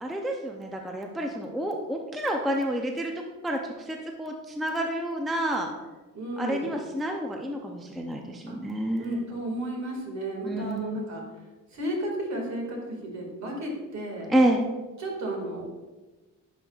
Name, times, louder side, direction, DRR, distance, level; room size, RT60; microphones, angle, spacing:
voice 1, 0.0-3.1 3.4-5.7 6.4-9.2 10.5-11.1 14.3-14.7, right 1 dB, ahead, 2 dB, 0.4 m, -29 dB
voice 2, 6.1-6.7 8.5-8.6 9.0-11.2 11.7-14.3 15.0-15.7, right 1 dB, 55° right, -1 dB, 2.0 m, -33 dB
10.5 x 5.2 x 2.3 m, 1.2 s
wide cardioid pair, 155°, 33 cm